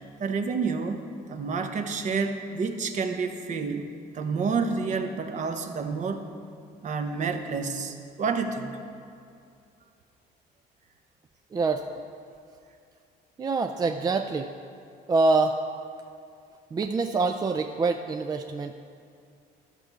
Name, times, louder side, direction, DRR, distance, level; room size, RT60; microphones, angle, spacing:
voice 1, 0.2-1.0 1.3-3.9 4.1-6.3 6.8-8.8, right 5 dB, 45° right, 6 dB, 0.9 m, -29 dB
voice 2, 11.5-11.9 13.4-14.5 15.1-15.6 16.7-18.7, right 3 dB, 25° right, 6 dB, 0.4 m, -25 dB
12.5 x 4.8 x 6.8 m, 2.4 s
cardioid pair, 110°, 17 cm